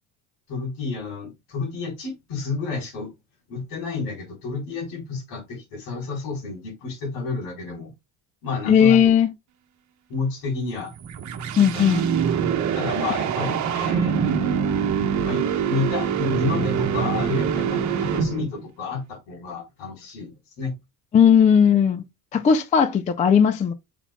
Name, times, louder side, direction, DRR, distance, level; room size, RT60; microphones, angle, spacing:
voice 1, 0.5-3.1 3.5-7.9 8.4-9.1 10.1-10.9 11.6-12.0 12.7-14.3 15.1-20.8, left 4 dB, 70° left, 4.1 m, -30 dB
voice 2, 8.7-9.3 11.6-12.0 21.1-22.0 22.3-23.7, left 7 dB, 20° left, 0.3 m, -17 dB
sound 1, 10.8-18.6, right 7 dB, 40° right, 1.2 m, -24 dB
8.2 x 5.9 x 2.2 m
cardioid pair, 165°, 42 cm